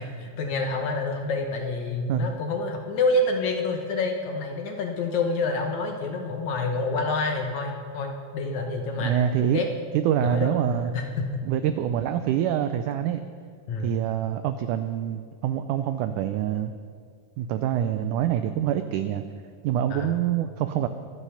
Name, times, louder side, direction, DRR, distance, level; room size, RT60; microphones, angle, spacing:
voice 1, 0.0-9.1 9.5-9.7 10.2-10.6 10.9-11.4 13.7-14.0 19.9-20.1, left 3 dB, 65° left, 3 dB, 2.0 m, -28 dB
voice 2, 9.0-9.6 9.9-10.9 11.4-13.2 13.8-16.7 17.4-19.2 19.6-20.9, right 10 dB, 90° right, 10 dB, 1.7 m, -25 dB
23.5 x 8.2 x 5.7 m, 2.1 s
omnidirectional pair, 4.2 m